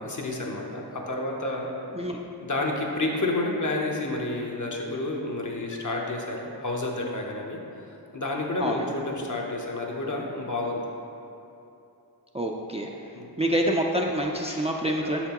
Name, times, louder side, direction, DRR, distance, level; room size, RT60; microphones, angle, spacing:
voice 1, 0.0-1.7 2.4-7.6 8.1-10.8 13.1-13.3 14.5-14.6 15.0-15.1, left 2 dB, 50° left, 0 dB, 0.8 m, -30 dB
voice 2, 12.3-12.9 13.4-15.3, right 1 dB, 15° right, -1 dB, 0.4 m, -26 dB
6.1 x 5.8 x 2.9 m, 2.8 s
wide cardioid pair, 50°, 40 cm